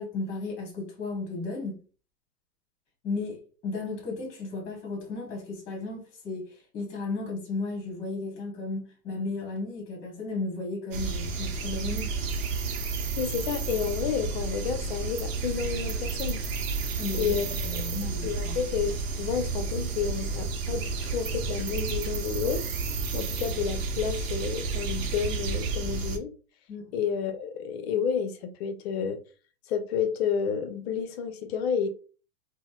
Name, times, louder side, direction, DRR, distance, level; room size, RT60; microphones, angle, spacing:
voice 1, 0.0-1.8 3.0-12.1 17.0-17.4 17.6-18.6 26.7-26.9, left 3 dB, 25° left, 1.2 m, -34 dB
sound 1, 10.9-26.2, right 4 dB, 60° right, 0.8 m, -31 dB
voice 2, 13.2-16.4 17.1-17.9 18.2-22.7 23.1-26.3 26.9-29.2 29.7-31.9, left 7 dB, 45° left, 0.6 m, -30 dB
4.0 x 2.1 x 2.3 m
hypercardioid pair, 125°, 44 cm